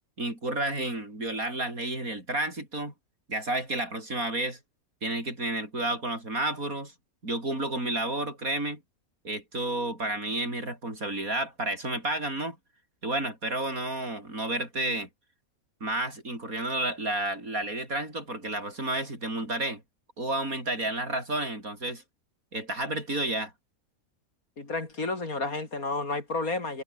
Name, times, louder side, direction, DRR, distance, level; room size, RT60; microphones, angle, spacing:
voice 1, 0.2-2.9 3.3-4.6 5.0-6.9 7.2-8.8 9.2-12.6 13.0-15.1 15.8-19.8 20.2-22.0 22.5-23.5, right 2 dB, 70° right, 8.0 m, -31 dB
voice 2, 24.6-26.8, left 3 dB, 70° left, 4.6 m, -31 dB
omnidirectional pair, 1.6 m